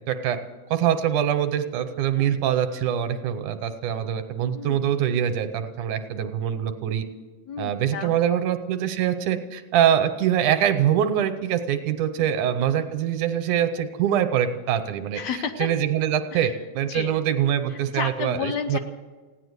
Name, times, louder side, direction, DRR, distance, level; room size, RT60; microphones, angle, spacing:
voice 1, 0.1-0.4 0.7-7.0 7.6-15.2 15.6-18.8, right 10 dB, 75° right, 10 dB, 2.3 m, -24 dB
voice 2, 7.5-8.4 12.1-12.2 15.1-15.7 16.3-16.5 16.9-17.1 17.7-18.8, left 6 dB, 70° left, 6 dB, 1.9 m, -32 dB
16.5 x 10.0 x 8.1 m, 1.3 s
omnidirectional pair, 3.6 m